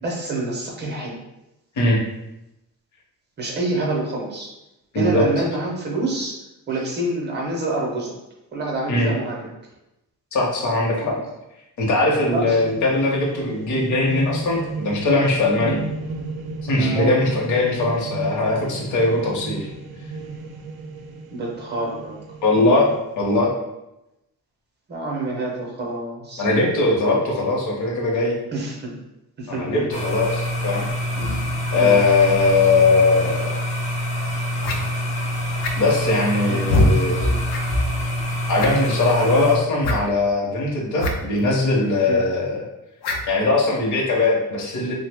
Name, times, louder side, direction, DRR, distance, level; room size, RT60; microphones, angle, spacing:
voice 1, 0.0-1.2 3.4-4.5 4.9-6.4 6.7-8.1 8.5-9.4 11.0-11.2 12.3-12.6 15.6-15.8 16.8-17.2 21.3-22.2 24.9-26.5 28.5-28.9 29.4-29.9 31.2-31.5 31.8-32.0 36.5-36.7 37.2-37.4 42.1-42.2, right 2 dB, 30° right, -1 dB, 0.6 m, -27 dB
voice 2, 4.9-5.3 8.9-9.1 10.3-11.2 11.8-15.8 16.6-19.7 22.4-22.9 23.2-23.5 26.4-28.3 29.5-30.9 31.7-33.6 35.8-37.3 38.5-42.6 43.3-44.9, left 2 dB, 50° left, -2 dB, 0.7 m, -20 dB
sound 1, 12.2-23.0, right 3 dB, 75° right, 0.5 m, -34 dB
sound 2, 29.9-39.6, equal, 20° left, 0.3 m, -25 dB
sound 3, 33.8-33.9 34.6-34.8 35.6-36.0 36.7-36.9 37.5-37.6 37.9-38.0 38.5-38.9 39.8-40.0 41.0-41.1 41.4-41.5 43.0-43.3, left 1 dB, 90° left, 0.6 m, -21 dB
3.1 x 2.0 x 3.4 m, 0.92 s
wide cardioid pair, 175°, 38 cm